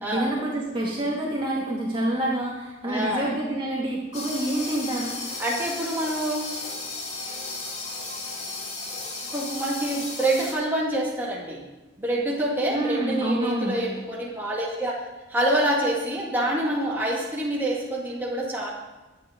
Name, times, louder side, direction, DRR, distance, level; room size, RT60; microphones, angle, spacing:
voice 1, 0.1-5.2 12.7-13.8, right 1 dB, 25° right, -4 dB, 2.2 m, -27 dB
voice 2, 2.9-3.3 5.4-6.5 9.3-11.6 12.0-15.0 15.3-18.7, right 1 dB, 10° right, -5 dB, 2.2 m, -26 dB
sound 1, 4.1-10.5, left 3 dB, 35° left, 2.7 m, -34 dB
22.5 x 9.2 x 3.8 m, 1.1 s
head